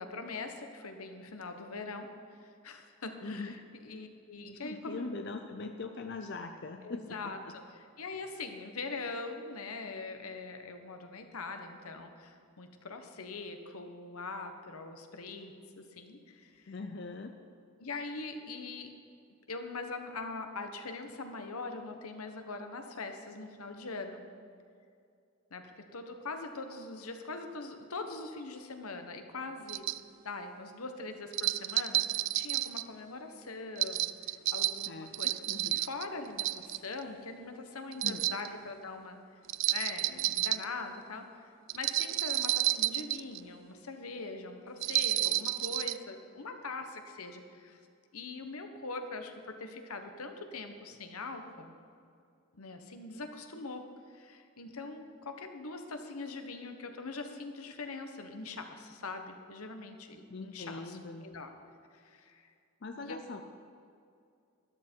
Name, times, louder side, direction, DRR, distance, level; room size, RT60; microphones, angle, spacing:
voice 1, 0.0-2.1 2.4-5.1 6.8-7.4 8.0-16.7 17.8-18.9 19.5-24.2 25.5-29.9 30.2-35.3 35.7-39.2 39.7-47.8 48.1-51.7 52.5-53.8 54.1-61.5 61.9-62.5 63.0-63.2, left 3 dB, 85° left, 6 dB, 1.2 m, -42 dB
voice 2, 3.2-3.5 4.6-7.2 16.7-17.4 34.9-35.8 38.0-38.3 60.3-61.3 62.8-63.4, left 3 dB, 50° left, 5 dB, 0.6 m, -41 dB
sound 1, 29.7-30.0 31.3-32.8 33.8-36.0 36.4-37.0 37.9-38.5 39.5-40.6 41.7-43.4 44.8-46.0, right 16 dB, 60° right, 0.3 m, -30 dB
13.0 x 12.0 x 4.6 m, 2.4 s
head